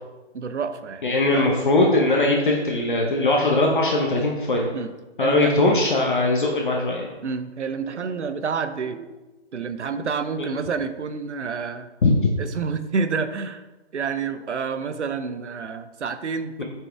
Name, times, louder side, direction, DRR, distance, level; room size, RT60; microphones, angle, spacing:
voice 1, 0.3-1.5 4.7-4.9 5.2-5.5 7.2-9.1 9.5-11.9 12.4-13.6 13.9-16.6, right 5 dB, 80° right, 10 dB, 0.7 m, -29 dB
voice 2, 1.0-4.7 5.2-7.1 10.4-10.5 12.0-12.1 16.6-16.7, left 2 dB, 45° left, 0 dB, 0.9 m, -20 dB
7.8 x 4.5 x 3.4 m, 1.1 s
hypercardioid pair, 165°, 35 cm